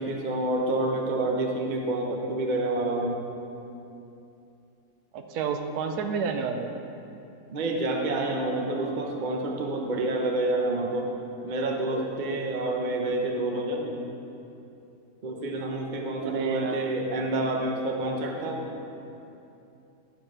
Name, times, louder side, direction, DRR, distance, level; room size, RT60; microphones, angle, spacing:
voice 1, 0.0-3.2 7.5-11.1 11.4-14.0 15.2-18.7, right 2 dB, 40° right, 1 dB, 0.7 m, -28 dB
voice 2, 5.1-6.7 16.2-16.9, right 5 dB, 80° right, 5 dB, 1.1 m, -30 dB
11.0 x 4.4 x 4.8 m, 2.8 s
omnidirectional pair, 1.7 m